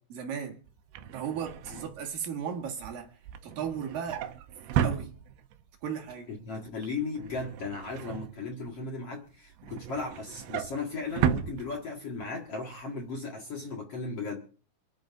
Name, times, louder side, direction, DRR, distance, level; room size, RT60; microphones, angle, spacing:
voice 1, 0.1-0.6 1.1-3.1 3.4-4.3 4.8-5.1 5.8-6.3, right 7 dB, 65° right, 3.3 m, -35 dB
Drawer open or close, 0.7-5.7 6.1-6.4 6.7-8.9 9.3-12.3 12.6-12.8 13.1-13.2, right 10 dB, 80° right, 2.9 m, -34 dB
voice 2, 6.3-14.5, left 4 dB, 50° left, 2.1 m, -36 dB
28.5 x 10.5 x 2.6 m
omnidirectional pair, 4.6 m